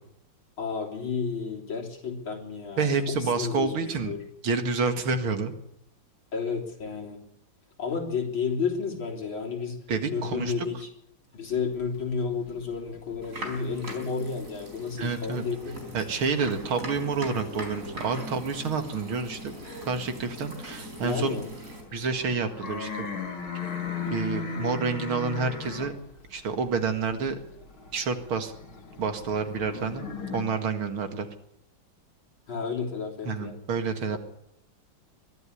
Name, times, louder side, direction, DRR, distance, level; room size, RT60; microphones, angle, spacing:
voice 1, 0.6-4.2 6.3-7.2 7.8-9.8 10.1-10.9 11.3-16.0 21.0-21.5 32.5-33.6 34.1-34.2, left 5 dB, 70° left, 0 dB, 4.2 m, -32 dB
voice 2, 2.8-4.1 4.4-5.5 9.9-10.7 15.0-15.4 15.9-19.6 19.8-21.4 21.9-23.1 24.1-25.9 26.3-27.4 27.9-28.5 29.0-31.3 33.3-34.2, right 4 dB, 85° right, 7 dB, 2.7 m, -28 dB
sound 1, 11.5-14.4 14.7-17.3 17.7-30.4, left 6 dB, 85° left, 3.0 m, -39 dB
sound 2, 13.2-21.8, equal, 40° right, 4.7 m, -40 dB
22.5 x 12.5 x 9.8 m, 0.77 s
omnidirectional pair, 2.2 m